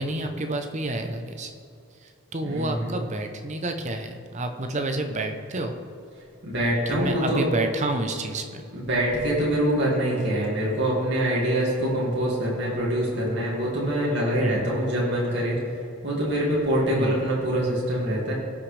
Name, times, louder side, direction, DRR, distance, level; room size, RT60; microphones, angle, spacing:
voice 1, 0.0-1.5 2.0-5.7 6.9-8.6 14.4-14.7 17.0-17.1, right 2 dB, 30° right, 6 dB, 0.7 m, -29 dB
voice 2, 2.4-3.0 6.4-7.4 8.7-15.6 16.0-18.3, right 1 dB, 50° right, -6 dB, 2.3 m, -24 dB
17.5 x 6.1 x 3.3 m, 2.5 s
head